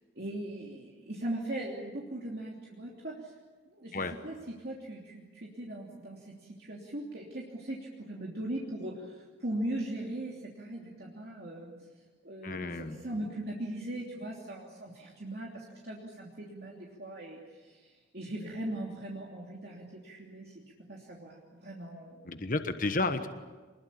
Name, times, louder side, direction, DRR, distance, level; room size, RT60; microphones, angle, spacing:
voice 1, 0.2-3.3 3.7-11.8 12.2-20.6 20.9-22.5, right 1 dB, 55° right, -3 dB, 3.1 m, -39 dB
voice 2, 12.4-13.0 22.2-23.3, left 2 dB, 45° left, 8 dB, 1.2 m, -32 dB
25.0 x 21.5 x 8.6 m, 1.3 s
head